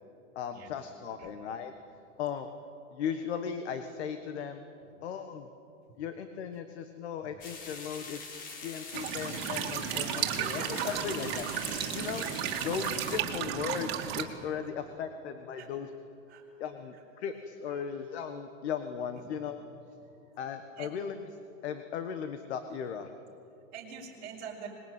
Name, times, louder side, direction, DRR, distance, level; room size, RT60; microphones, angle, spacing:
voice 1, 0.3-1.7 2.2-2.5 2.9-4.6 5.0-5.5 6.0-12.2 12.6-15.9 16.6-19.6 20.4-21.2 21.6-23.1, left 7 dB, 55° left, 8 dB, 1.5 m, -37 dB
sound 1, 7.4-13.2, left 4 dB, 20° left, 1.9 m, -43 dB
sound 2, 8.9-14.2, right 9 dB, 50° right, 2.8 m, -34 dB
voice 2, 9.9-11.0 11.7-11.8 15.6-15.7 16.3-16.4 17.7-17.9 19.2-19.3 20.0-20.2 20.8-20.9 23.7-24.7, right 6 dB, 20° right, -4 dB, 6.2 m, -44 dB
25.0 x 21.5 x 8.9 m, 2.7 s
supercardioid pair, 170°, 40 cm